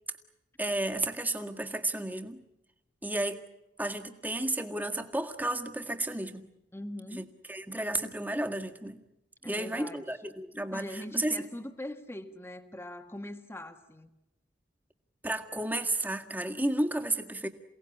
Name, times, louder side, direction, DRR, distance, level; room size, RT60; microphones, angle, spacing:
voice 1, 0.6-2.4 3.0-3.4 3.8-6.4 7.1-9.0 9.4-11.5 15.2-17.5, right 1 dB, 10° right, 4 dB, 1.8 m, -32 dB
voice 2, 6.7-7.3 9.4-10.0 10.7-14.1, left 1 dB, 15° left, 7 dB, 1.4 m, -42 dB
28.5 x 18.0 x 9.9 m, 0.88 s
head